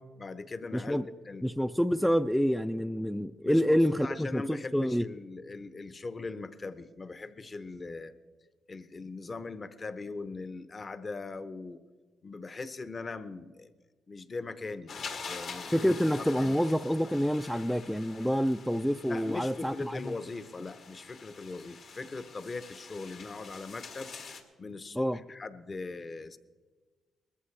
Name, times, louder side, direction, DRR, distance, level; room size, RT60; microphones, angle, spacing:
voice 1, 0.2-1.0 1.2-1.4 3.4-8.1 8.7-11.8 12.2-13.7 14.1-16.0 16.4-16.8 19.1-26.4, left 3 dB, 35° left, 12 dB, 0.8 m, -40 dB
voice 2, 0.7-1.0 1.4-5.0 15.7-20.0 25.0-25.2, equal, ahead, 8 dB, 0.3 m, -27 dB
sound 1, 14.9-24.4, left 5 dB, 65° left, 1.8 m, -46 dB
20.5 x 14.0 x 3.3 m, 1.4 s
cardioid pair, 90°, 0 cm